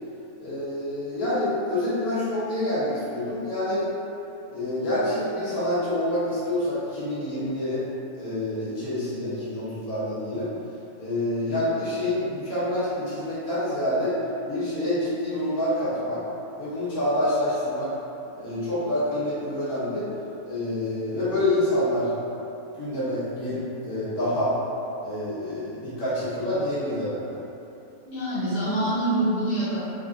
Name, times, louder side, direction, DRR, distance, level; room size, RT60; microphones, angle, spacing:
voice 1, 0.4-3.9 4.5-7.8 8.2-10.5 11.0-14.2 14.5-16.2 16.6-17.9 18.4-20.1 20.4-22.1 22.8-24.5 25.0-27.4, left 1 dB, 75° left, -12 dB, 1.7 m, -27 dB
voice 2, 28.0-29.8, right 1 dB, 40° left, -13 dB, 1.4 m, -25 dB
4.1 x 2.4 x 2.5 m, 2.9 s
omnidirectional pair, 1.6 m